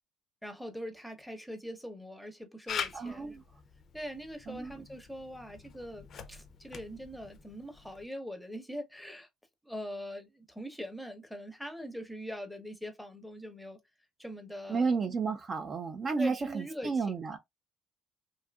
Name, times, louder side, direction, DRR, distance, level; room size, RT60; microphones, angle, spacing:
voice 1, 0.4-3.4 3.9-9.3 9.6-13.8 14.2-15.1 16.2-17.2, equal, ahead, 0.7 m, -42 dB
Camera, 2.7-8.1, left 7 dB, 55° left, 0.4 m, -44 dB
voice 2, 2.9-3.4 4.5-4.7 14.7-17.4, right 4 dB, 40° right, 0.4 m, -32 dB
2.7 x 2.4 x 2.2 m
cardioid pair, 100°, 0 cm